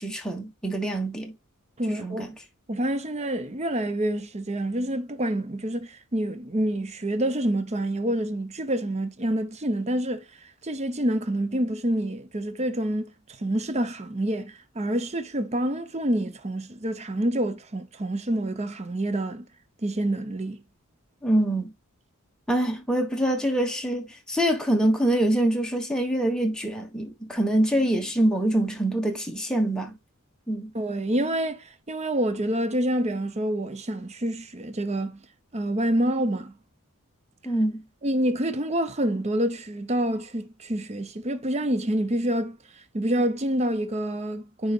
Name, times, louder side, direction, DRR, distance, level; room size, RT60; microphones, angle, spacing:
voice 1, 0.0-1.3 2.0-2.3 21.2-21.7 22.5-29.9 30.5-30.7 37.4-37.8, right 1 dB, 5° left, 1.4 m, -25 dB
voice 2, 1.8-2.4 2.7-13.1 13.4-19.5 19.8-20.6 30.7-35.2 35.5-36.5 38.0-42.6 42.9-44.7, right 1 dB, 30° right, 0.8 m, -27 dB
9.3 x 4.8 x 2.4 m
head